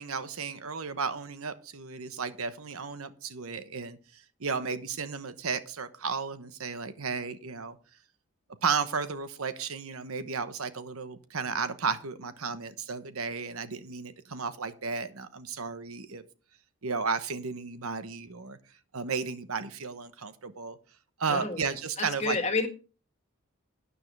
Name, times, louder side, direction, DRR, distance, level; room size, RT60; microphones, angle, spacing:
voice 1, 0.0-7.8 8.6-16.2 16.8-18.6 18.9-20.8 21.2-22.4, right 5 dB, 85° right, 11 dB, 1.1 m, -34 dB
voice 2, 21.3-21.6 22.0-22.7, left 3 dB, 30° left, 6 dB, 1.7 m, -29 dB
12.5 x 9.7 x 3.3 m, 0.33 s
head